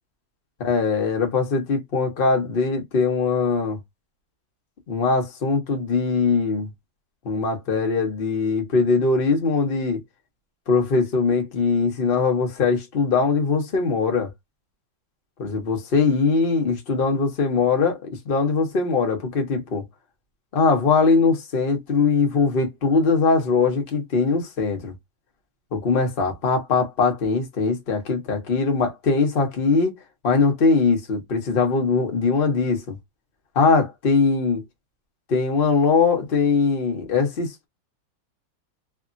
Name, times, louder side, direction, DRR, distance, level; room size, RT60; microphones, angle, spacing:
voice 1, 0.6-3.8 4.9-6.7 7.2-10.0 10.7-14.3 15.4-19.8 20.5-24.9 25.7-30.0 30.2-33.0 33.5-34.6 35.3-37.7, left 4 dB, 40° left, 0.9 m, -21 dB
3.5 x 2.3 x 2.5 m
omnidirectional pair, 2.1 m